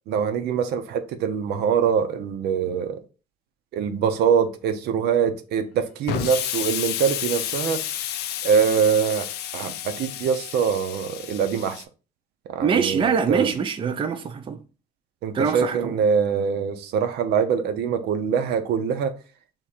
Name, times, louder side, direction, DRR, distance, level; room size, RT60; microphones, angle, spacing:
voice 1, 0.1-3.0 3.7-7.8 8.4-9.3 9.5-11.8 12.5-13.5 15.2-19.1, right 7 dB, 75° right, 0.7 m, -23 dB
Explosion, 6.1-11.8, left 11 dB, 75° left, 0.5 m, -31 dB
voice 2, 12.6-14.6 15.3-16.0, right 6 dB, 30° right, 0.5 m, -24 dB
3.6 x 3.0 x 4.3 m
cardioid pair, 110°, 17 cm